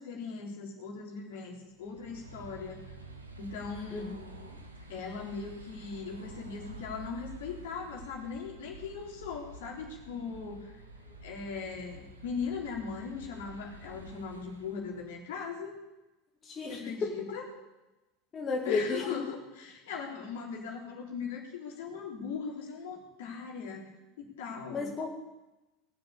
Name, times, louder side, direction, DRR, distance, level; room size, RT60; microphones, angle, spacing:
voice 1, 0.0-3.0 3.4-4.1 4.9-10.8 11.2-15.7 16.7-17.5 18.6-23.9 24.2-24.9, left 5 dB, 60° left, 0 dB, 3.6 m, -39 dB
sound 1, 1.7-15.2, right 2 dB, 80° right, 1.6 m, -49 dB
voice 2, 3.9-4.6 16.4-17.2 18.3-19.1 24.7-25.1, left 4 dB, 25° left, 0 dB, 2.3 m, -33 dB
20.0 x 7.8 x 8.6 m, 1.0 s
figure-of-eight pair, 75°, 0 cm